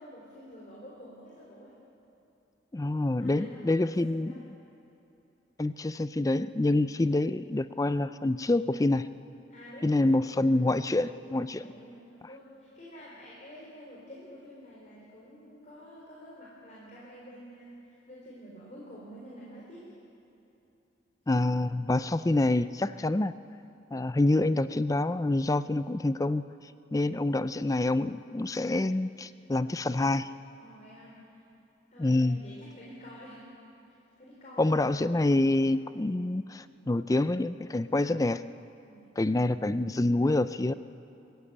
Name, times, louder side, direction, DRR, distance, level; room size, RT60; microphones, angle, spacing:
voice 1, 0.0-1.8 3.2-4.4 9.5-10.3 11.6-20.0 30.6-31.4 31.9-33.5 34.2-34.9 38.9-39.6, equal, 40° left, -5 dB, 4.2 m, -49 dB
voice 2, 2.7-4.3 5.6-9.1 9.8-11.7 21.3-23.3 23.9-26.4 26.9-30.3 32.0-32.4 34.6-38.4 39.2-40.7, left 2 dB, 20° left, 14 dB, 0.4 m, -27 dB
24.0 x 15.0 x 8.7 m, 2.9 s
head